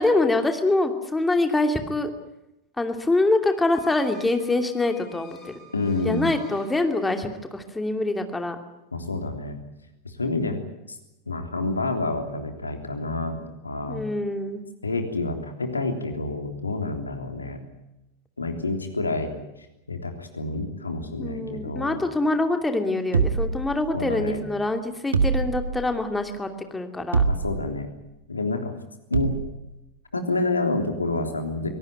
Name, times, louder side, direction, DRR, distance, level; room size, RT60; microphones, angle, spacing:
voice 1, 0.0-2.1 2.8-5.5 6.0-8.6 13.9-14.6 21.2-27.2, left 2 dB, 10° left, 6 dB, 2.7 m, -25 dB
sound 1, 3.4-7.5, left 2 dB, 30° left, 7.9 m, -51 dB
voice 2, 5.7-6.3 8.9-9.6 10.0-10.6 10.9-11.0 11.3-14.0 14.8-17.6 18.4-19.3 19.9-22.0 23.9-24.4 27.2-27.9 28.3-28.7 29.1-29.4 30.1-31.7, left 2 dB, 80° left, 5 dB, 3.4 m, -28 dB
sound 2, 23.1-24.2 25.1-26.0 27.1-27.8 29.1-29.6, right 4 dB, 70° right, 1.6 m, -25 dB
24.5 x 18.0 x 9.5 m, 0.94 s
figure-of-eight pair, 90°, 0 cm